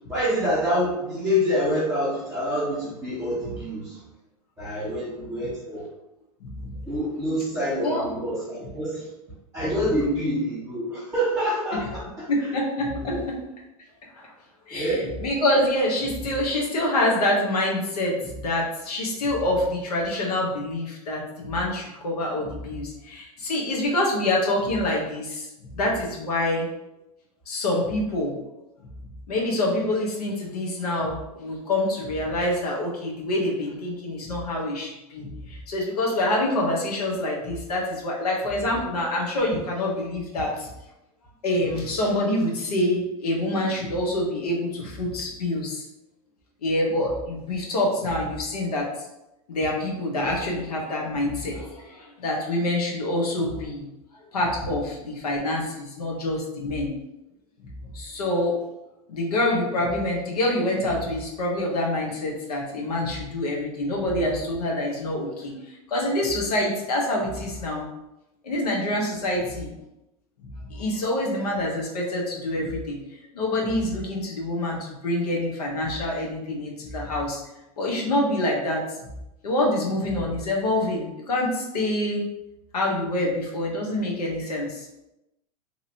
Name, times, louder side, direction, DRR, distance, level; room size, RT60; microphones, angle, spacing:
voice 1, 0.1-4.0 4.6-5.9 6.9-9.1 9.5-12.5 13.1-13.2 14.7-15.1, equal, 15° right, -9 dB, 1.3 m, -26 dB
voice 2, 6.4-6.7 7.8-8.0 12.3-13.1 14.1-14.3 14.7-14.9 15.2-26.7 27.5-28.3 29.3-40.7 41.4-45.8 46.6-48.9 49.5-53.8 54.3-56.9 57.6-57.7 57.9-58.6 59.1-67.8 68.4-69.7 70.4-73.0 73.3-77.4 77.8-78.8 79.4-82.2 82.7-84.9, left 1 dB, 85° left, -1 dB, 0.9 m, -26 dB
2.9 x 2.6 x 2.8 m, 0.92 s
hypercardioid pair, 115°, 19 cm